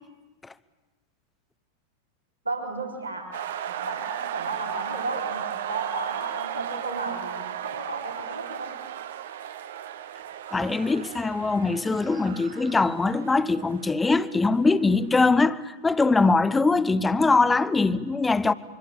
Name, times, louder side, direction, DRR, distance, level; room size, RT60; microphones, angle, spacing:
voice 1, 2.4-3.3 3.7-8.9, right 3 dB, 80° right, 4.2 m, -34 dB
sound 1, 3.3-15.0, right 10 dB, 60° right, 1.0 m, -35 dB
voice 2, 10.5-18.5, left 3 dB, 10° left, 0.8 m, -22 dB
24.5 x 24.5 x 8.7 m
figure-of-eight pair, 90°, 0 cm